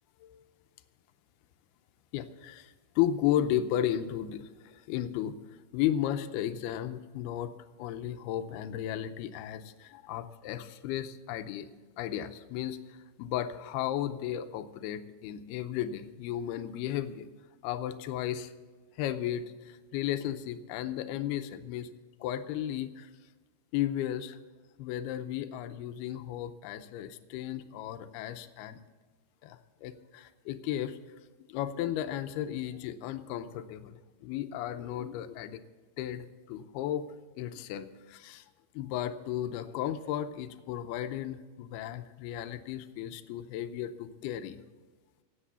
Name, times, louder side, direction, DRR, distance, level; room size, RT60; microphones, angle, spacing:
voice 1, 2.1-5.4 5.7-11.7 12.0-17.3 17.6-18.5 19.0-21.9 22.2-23.1 23.7-24.4 24.8-28.8 29.4-31.0 31.5-35.6 36.0-37.1 37.4-38.5 38.7-44.6, left 11 dB, 85° left, 10 dB, 2.6 m, -34 dB
17.5 x 8.2 x 6.9 m, 1.3 s
omnidirectional pair, 4.6 m